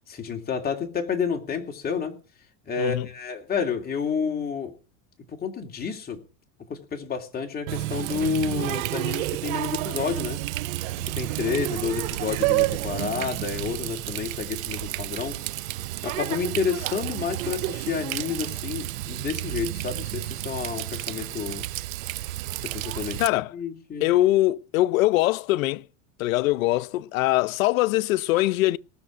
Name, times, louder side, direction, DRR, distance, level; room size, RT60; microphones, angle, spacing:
voice 1, 0.1-2.2 2.7-4.7 5.3-6.2 6.7-10.4 11.1-15.4 16.0-21.7 22.6-24.1, left 6 dB, 25° left, 2.8 m, -30 dB
Water tap faucet, 7.7-23.3, right 17 dB, 75° right, 0.7 m, -30 dB
voice 2, 23.2-23.5 24.0-25.8 26.2-28.8, left 17 dB, 85° left, 0.7 m, -22 dB
18.5 x 6.7 x 9.0 m
supercardioid pair, 135°, 40 cm